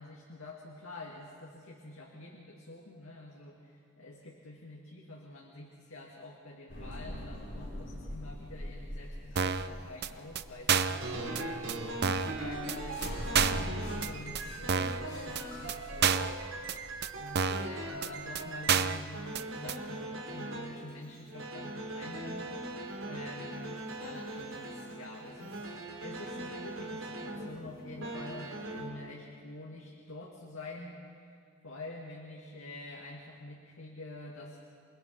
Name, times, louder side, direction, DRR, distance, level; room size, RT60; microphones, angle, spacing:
voice 1, 0.0-16.4 16.7-16.8 17.2-31.4 31.6-34.6, left 2 dB, 80° left, -1 dB, 2.3 m, -47 dB
sound 1, 6.7-19.1, left 1 dB, 60° left, 6.7 m, -44 dB
sound 2, 9.4-9.7 10.0-10.1 10.4-10.5 10.7-11.0 11.4-11.5 11.7-11.8 12.0-12.3 12.7-12.8 13.0-13.1 13.3-13.7 14.0-14.1 14.3-14.4 14.7-15.0 15.4-15.5 15.7-15.8 16.0-16.3 16.7-16.8 17.0-17.1 17.4-17.7 18.0-18.1 18.3-18.4 18.7-19.0 19.3-19.4 19.7-19.8, right 7 dB, 55° right, 0.7 m, -28 dB
sound 3, 10.9-20.9 21.3-28.9, right 2 dB, 75° right, 3.8 m, -40 dB
28.0 x 21.0 x 5.6 m, 2.3 s
head